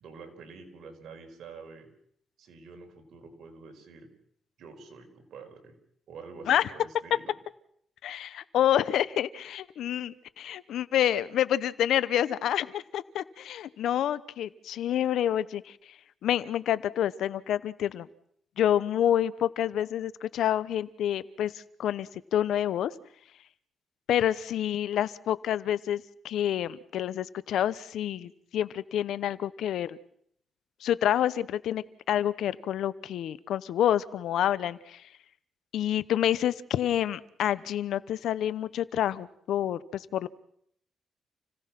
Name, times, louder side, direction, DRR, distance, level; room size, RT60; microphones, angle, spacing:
voice 1, 0.0-1.9 2.4-4.1 4.6-5.7 6.1-7.3, right 4 dB, 75° right, 3 dB, 4.9 m, -47 dB
voice 2, 8.0-15.8 16.2-18.1 18.6-22.9 24.1-30.0 30.8-35.0 35.7-40.3, left 11 dB, 85° left, 17 dB, 0.9 m, -28 dB
29.5 x 17.0 x 6.0 m, 0.69 s
cardioid pair, 90°, 0 cm